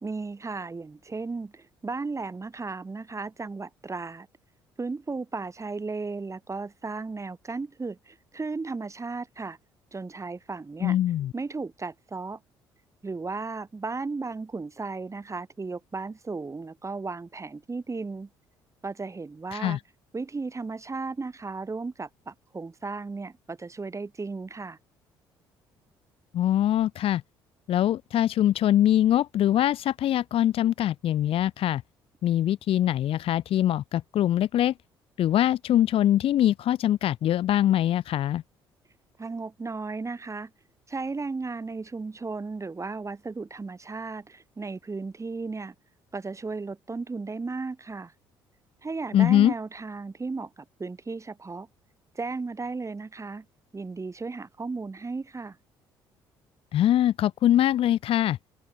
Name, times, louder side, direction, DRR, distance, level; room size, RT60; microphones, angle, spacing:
voice 1, 0.0-4.3 4.8-9.6 9.9-11.0 11.3-12.4 13.0-18.3 18.8-19.8 20.1-24.8 39.2-40.5 40.9-45.7 46.1-48.1 48.8-51.7 52.2-53.5 53.7-55.6, right 4 dB, 25° right, 3.7 m, -35 dB
voice 2, 10.8-11.3 19.5-19.8 26.3-27.2 27.7-31.8 32.2-34.7 35.2-38.4 49.1-49.5 56.7-58.4, left 12 dB, 55° left, 0.6 m, -23 dB
hypercardioid pair, 55°, 11 cm